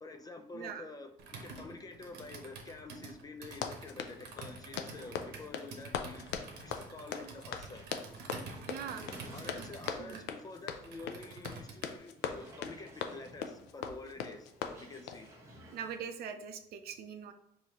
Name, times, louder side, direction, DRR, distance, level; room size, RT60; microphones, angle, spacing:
voice 1, 0.0-1.1 1.4-6.3 6.6-7.9 9.3-14.5 14.8-15.3, left 3 dB, 20° left, 7 dB, 0.4 m, -48 dB
voice 2, 0.5-0.8 8.7-9.2 9.5-9.7 10.0-10.2 15.6-17.3, right 7 dB, 65° right, 7 dB, 0.5 m, -42 dB
Computer keyboard, 1.2-12.0, right 4 dB, 80° right, 0.8 m, -48 dB
Run, 3.4-15.3, left 7 dB, 90° left, 0.4 m, -41 dB
sound 1, 4.4-10.1 10.6-10.7 11.1-11.2 12.1-16.0, equal, 15° right, 1.0 m, -55 dB
4.7 x 2.7 x 2.9 m, 0.77 s
cardioid pair, 110°, 17 cm